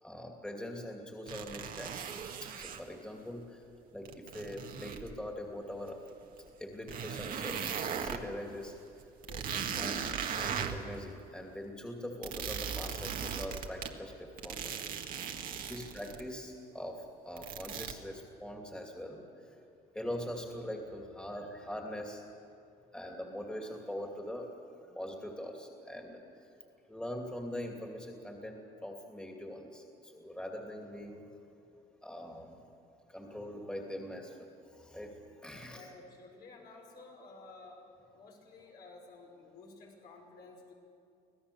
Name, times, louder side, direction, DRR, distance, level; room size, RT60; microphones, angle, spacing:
voice 1, 0.0-2.1 2.4-3.6 3.9-6.0 6.6-8.7 9.8-14.7 15.4-19.6 19.9-22.2 22.9-24.5 24.8-26.2 26.9-31.2 32.0-32.7 33.1-35.1 35.4-35.8, left 1 dB, 5° left, 1 dB, 2.6 m, -42 dB
sound 1, 1.3-2.8 4.0-5.1 5.9-6.0 6.5-6.6 6.9-8.2 8.7-8.8 9.0-10.9 12.2-13.9 14.4-16.2 17.4-17.9, right 7 dB, 55° right, 1.6 m, -38 dB
voice 2, 9.3-10.2 15.5-15.8 35.7-37.9 38.1-40.7, left 3 dB, 70° left, -1 dB, 5.7 m, -53 dB
25.5 x 17.0 x 7.0 m, 2.5 s
cardioid pair, 110°, 17 cm